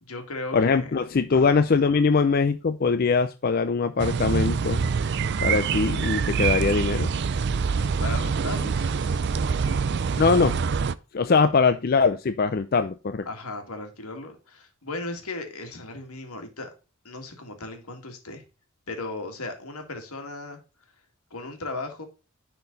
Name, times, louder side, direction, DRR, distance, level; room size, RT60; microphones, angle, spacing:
voice 1, 0.0-0.9 1.3-1.6 8.0-9.9 13.3-16.7 17.0-18.4 18.9-20.6 21.3-22.1, left 2 dB, 80° left, 2.1 m, -36 dB
voice 2, 0.5-4.9 5.4-7.1 10.2-10.6 11.1-13.2, left 4 dB, 40° left, 0.4 m, -22 dB
sound 1, 4.0-10.9, right 5 dB, 50° right, 0.4 m, -25 dB
10.5 x 4.4 x 4.0 m
head